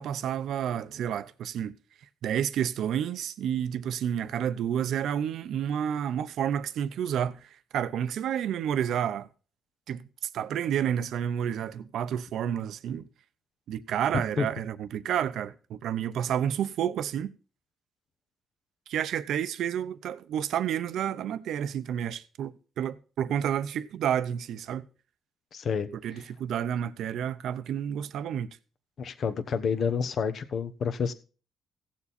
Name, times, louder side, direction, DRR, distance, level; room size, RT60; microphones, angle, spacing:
voice 1, 0.0-1.7 2.2-7.4 7.7-9.3 9.9-10.1 10.3-13.0 13.7-17.3 18.9-24.8 26.0-28.5, right 9 dB, 75° right, 0.7 m, -30 dB
voice 2, 25.5-25.9 29.0-31.1, left 6 dB, 55° left, 1.1 m, -29 dB
15.5 x 7.3 x 4.2 m
cardioid pair, 90°, 0 cm